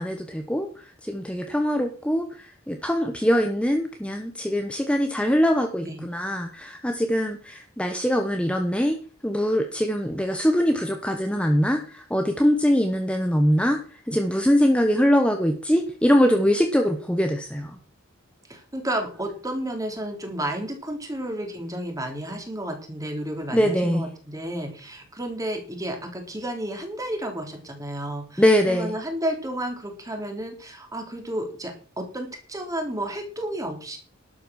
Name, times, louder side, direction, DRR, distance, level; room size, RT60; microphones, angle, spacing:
voice 1, 0.0-9.0 9.2-17.8 23.5-24.1 28.4-29.0, equal, 5° left, 5 dB, 1.2 m, -23 dB
voice 2, 18.5-34.0, right 1 dB, 15° right, 4 dB, 3.6 m, -32 dB
12.0 x 8.8 x 6.5 m, 0.39 s
head